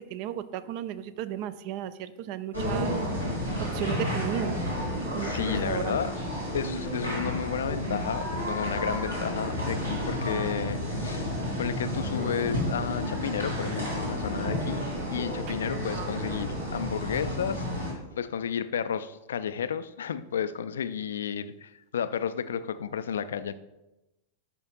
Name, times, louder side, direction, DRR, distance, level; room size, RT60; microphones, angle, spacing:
voice 1, 0.1-2.9 3.6-4.6 5.1-6.0 15.1-15.3 15.7-16.1, right 11 dB, 45° right, 14 dB, 0.4 m, -34 dB
sound 1, 2.5-17.9, equal, 90° right, 2.5 m, -31 dB
voice 2, 5.2-6.1 6.5-11.2 11.6-14.8 15.1-23.5, left 8 dB, 65° left, 13 dB, 0.3 m, -32 dB
10.5 x 5.6 x 2.3 m, 0.97 s
figure-of-eight pair, 90°, 0 cm